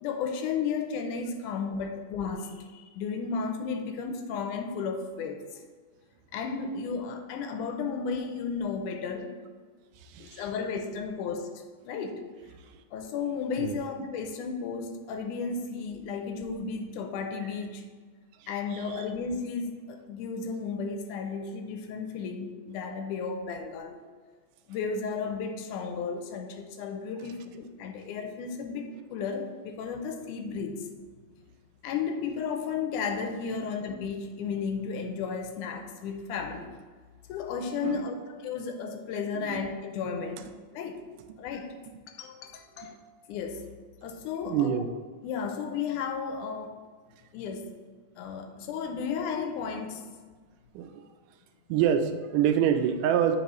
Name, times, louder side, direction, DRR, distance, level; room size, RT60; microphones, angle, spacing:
voice 1, 0.0-5.6 6.3-9.4 10.2-11.5 11.8-12.2 12.9-17.9 18.5-24.0 24.7-30.9 31.8-36.7 37.3-41.0 41.4-41.7 42.1-43.6 44.0-44.8 45.2-46.8 47.3-47.7 48.2-50.1, left 5 dB, 85° left, 5 dB, 2.0 m, -34 dB
voice 2, 10.1-10.4 13.6-13.8 18.7-19.0 37.8-38.1 39.5-39.6 42.8-42.9 44.5-44.9 50.7-51.0 51.7-53.4, right 9 dB, 90° right, 8 dB, 2.1 m, -26 dB
8.2 x 5.1 x 3.0 m, 1.5 s
omnidirectional pair, 3.6 m